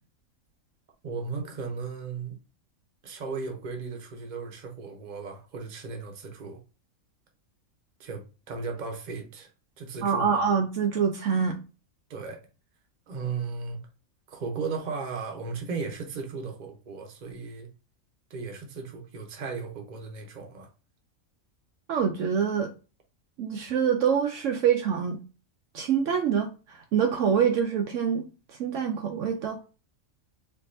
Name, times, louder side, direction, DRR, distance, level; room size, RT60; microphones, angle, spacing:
voice 1, 1.0-2.4 3.0-6.6 8.0-9.5 9.8-10.4 12.1-12.4 13.1-13.8 14.3-17.7 18.3-20.7, right 4 dB, 40° right, 0.8 m, -36 dB
voice 2, 10.0-11.6 21.9-22.7 23.4-25.2 25.7-28.2 28.6-29.6, right 7 dB, 70° right, 0.9 m, -25 dB
4.5 x 2.7 x 2.6 m
omnidirectional pair, 1.5 m